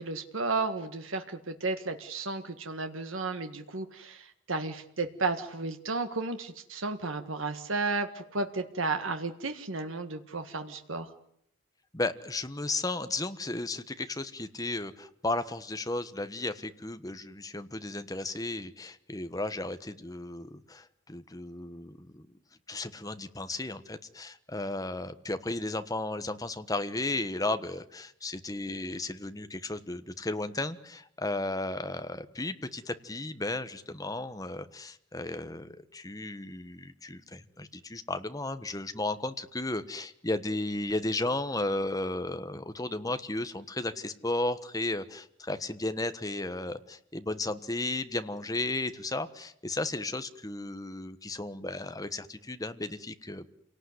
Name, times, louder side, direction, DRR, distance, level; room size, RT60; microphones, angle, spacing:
voice 1, 0.0-11.1, right 3 dB, 80° right, 7 dB, 1.7 m, -33 dB
voice 2, 11.9-22.3 22.7-53.5, left 2 dB, 20° left, 10 dB, 1.3 m, -34 dB
27.5 x 18.5 x 9.7 m, 0.72 s
head